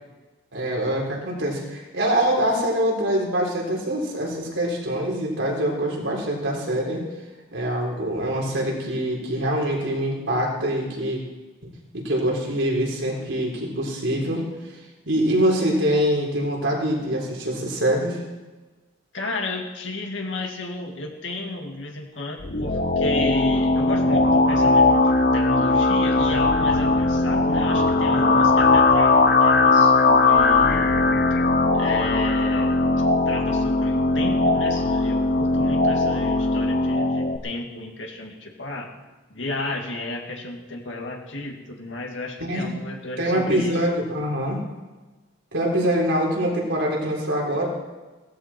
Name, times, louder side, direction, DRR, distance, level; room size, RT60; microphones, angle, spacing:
voice 1, 0.5-7.0 7.5-11.2 11.9-14.4 15.1-18.2 42.4-42.7 43.2-44.6 45.5-47.7, right 1 dB, 85° right, -2 dB, 4.2 m, -24 dB
voice 2, 19.1-30.9 31.7-32.8 33.3-38.9 39.3-43.9, left 2 dB, 85° left, 2 dB, 2.3 m, -33 dB
sound 1, 22.4-37.4, left 3 dB, 55° left, 1.1 m, -19 dB
17.5 x 14.0 x 4.6 m, 1.2 s
head